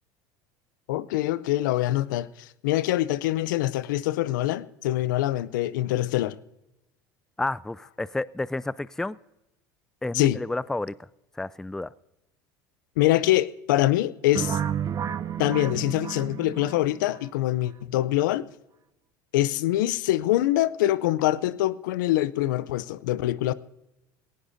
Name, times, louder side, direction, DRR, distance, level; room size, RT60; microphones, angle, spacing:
voice 1, 0.9-6.4 10.1-10.4 13.0-14.6 15.4-18.5 19.3-23.5, left 15 dB, 80° left, 0.5 m, -24 dB
voice 2, 7.4-9.2 10.0-10.9 11.4-11.9, left 2 dB, 5° left, 0.3 m, -30 dB
sound 1, 14.4-17.2, right 9 dB, 35° right, 0.7 m, -31 dB
18.5 x 17.0 x 2.7 m
hypercardioid pair, 85°, 10 cm